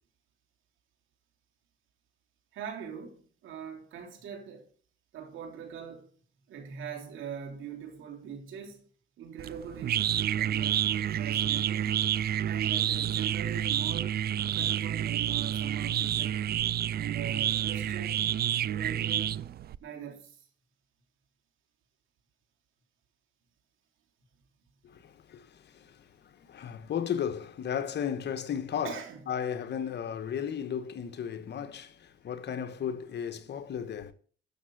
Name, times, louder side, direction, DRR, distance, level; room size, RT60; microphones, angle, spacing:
voice 1, 2.5-4.7 5.1-6.1 6.5-8.8 9.2-11.9 12.5-14.1 14.4-16.4 16.9-18.2 18.6-19.4 19.8-20.5 28.8-29.2, right 8 dB, 80° right, 3.6 m, -41 dB
sound 1, 9.4-19.8, right 10 dB, 55° right, 0.5 m, -29 dB
voice 2, 24.8-34.1, left 8 dB, 60° left, 1.3 m, -35 dB
12.5 x 6.8 x 6.5 m
cardioid pair, 90°, 20 cm